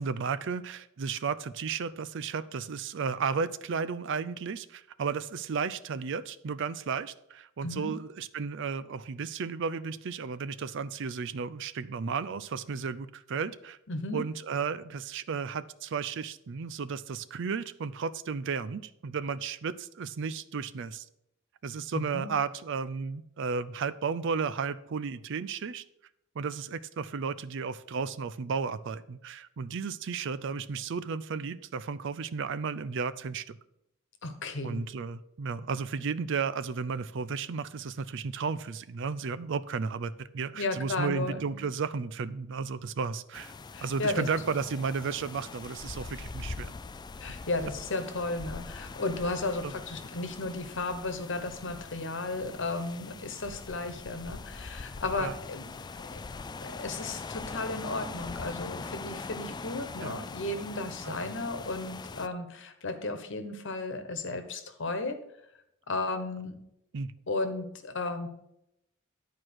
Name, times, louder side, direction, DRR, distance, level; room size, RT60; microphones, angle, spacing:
voice 1, 0.0-13.8 14.1-21.1 21.6-25.8 26.4-33.6 34.6-43.5 43.8-46.7 49.6-49.7 55.2-55.3 60.0-60.2 61.0-61.3 66.9-67.1, right 5 dB, 65° right, 16 dB, 0.5 m, -33 dB
voice 2, 7.6-8.0 13.9-14.2 21.9-22.3 34.2-34.8 40.5-41.6 43.7-44.5 47.2-55.6 56.1-56.2 56.5-65.2 65.9-66.6 67.3-68.3, left 2 dB, 65° left, 8 dB, 1.2 m, -34 dB
sound 1, 43.3-62.3, left 4 dB, 20° left, 0.3 m, -42 dB
11.0 x 4.7 x 6.2 m, 0.80 s
head